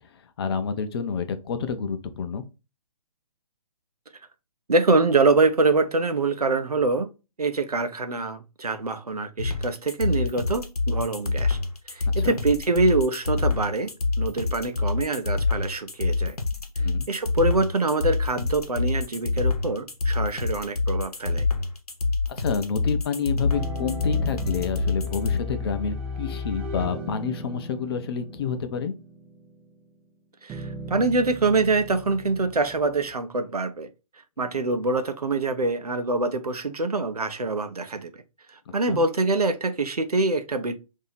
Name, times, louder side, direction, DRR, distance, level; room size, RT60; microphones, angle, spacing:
voice 1, 0.4-2.4 12.2-12.3 16.8-17.0 22.3-29.0 38.9-39.0, left 6 dB, 40° left, 0.5 m, -29 dB
voice 2, 4.7-7.1 7.4-11.6 11.9-13.9 14.2-16.4 17.1-21.5 30.4-33.9 34.4-38.1 38.7-40.7, right 3 dB, 90° right, 0.6 m, -24 dB
sound 1, 9.4-25.4, left 3 dB, 85° left, 0.9 m, -26 dB
sound 2, 23.5-29.7 30.5-33.1, left 2 dB, 10° right, 0.3 m, -35 dB
2.8 x 2.7 x 4.0 m
figure-of-eight pair, 135°, 19 cm